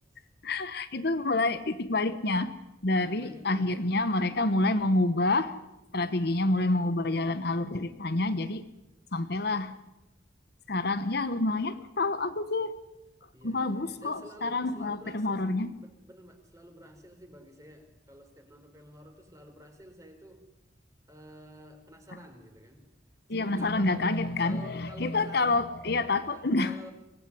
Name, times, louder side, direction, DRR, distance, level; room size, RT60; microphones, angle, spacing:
voice 1, 0.4-2.5 2.8-5.5 5.9-8.6 9.1-9.7 10.7-12.7 13.4-15.7 23.3-26.7, left 2 dB, 60° left, 1.1 m, -28 dB
voice 2, 3.0-4.4 13.3-20.4 21.1-22.9 23.3-24.1 24.4-25.6 26.3-26.9, equal, 20° right, 4.4 m, -51 dB
24.0 x 18.5 x 9.9 m
head